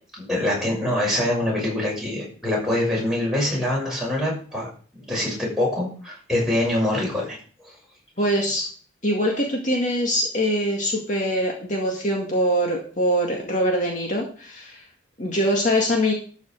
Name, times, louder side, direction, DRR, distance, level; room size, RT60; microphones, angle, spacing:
voice 1, 0.2-4.7 5.1-7.4, left 1 dB, ahead, -4 dB, 6.5 m, -24 dB
voice 2, 8.2-8.7 9.0-14.8 15.2-16.1, equal, 40° left, -1 dB, 2.2 m, -23 dB
12.5 x 5.7 x 6.6 m, 0.43 s
head